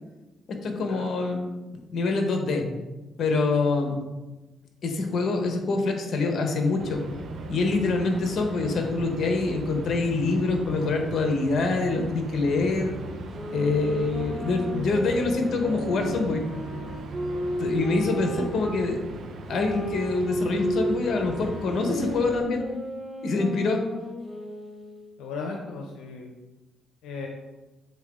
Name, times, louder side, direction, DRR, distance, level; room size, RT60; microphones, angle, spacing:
voice 1, 0.5-1.5 1.9-2.7 3.2-4.0 4.8-7.0 7.5-12.9 13.5-16.4 17.6-19.0 19.5-22.7 23.2-23.8, left 3 dB, 60° left, 4 dB, 1.1 m, -25 dB
sound 1, 6.8-22.4, right 2 dB, 65° right, 0.8 m, -39 dB
sound 2, 13.3-18.8 19.5-25.1, right 1 dB, 5° right, 1.2 m, -34 dB
voice 2, 25.2-26.3 27.0-27.3, left 4 dB, 90° left, 2 dB, 0.6 m, -36 dB
7.3 x 3.8 x 3.6 m, 1.1 s
cardioid pair, 90°, 0 cm